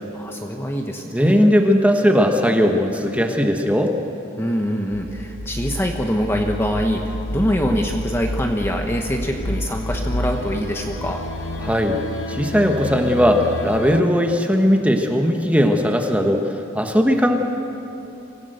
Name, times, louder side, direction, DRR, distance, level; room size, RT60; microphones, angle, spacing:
voice 1, 0.1-1.4 4.4-11.2, equal, 10° left, 2 dB, 1.1 m, -24 dB
voice 2, 1.1-3.9 11.6-12.0 12.3-17.4, equal, 5° right, 3 dB, 1.3 m, -18 dB
sound 1, 4.9-14.0, left 1 dB, 65° left, 1.0 m, -29 dB
25.0 x 16.5 x 8.0 m, 2.9 s
head